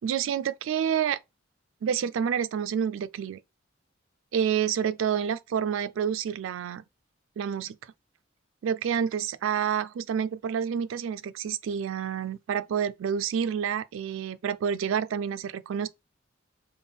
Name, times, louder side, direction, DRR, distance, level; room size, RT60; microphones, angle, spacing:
voice 1, 0.0-1.2 1.8-3.4 4.3-6.8 7.4-7.8 8.6-15.9, right 8 dB, 75° right, 0.3 m, -28 dB
3.4 x 2.2 x 3.5 m
head